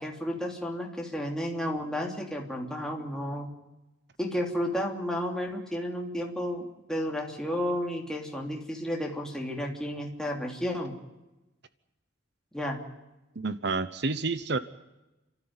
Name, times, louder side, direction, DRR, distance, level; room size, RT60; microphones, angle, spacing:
voice 1, 0.0-3.5 4.2-10.9 12.5-12.8, equal, 5° left, -1 dB, 3.1 m, -32 dB
voice 2, 13.4-14.6, right 3 dB, 65° right, 13 dB, 0.9 m, -29 dB
29.5 x 13.0 x 9.7 m, 1.0 s
head